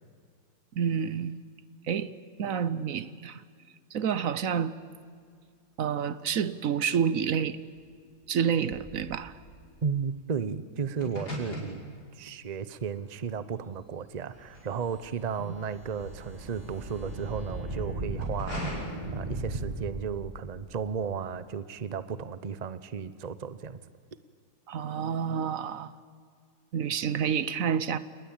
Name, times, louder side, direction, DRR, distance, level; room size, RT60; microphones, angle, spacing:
voice 1, 0.7-1.3 1.9-2.1 2.4-3.4 3.9-4.7 5.8-7.6 8.3-9.3 15.5-15.6 24.7-25.9 26.7-28.0, right 7 dB, 55° right, 1.0 m, -28 dB
sound 1, 7.8-15.2 15.6-17.3 17.9-18.7, equal, 55° left, 6.5 m, -42 dB
voice 2, 9.8-11.8 12.1-23.8, right 6 dB, 85° right, 0.3 m, -34 dB
sound 2, 14.2-20.5, right 1 dB, 20° right, 6.6 m, -38 dB
28.5 x 20.0 x 8.9 m
omnidirectional pair, 2.1 m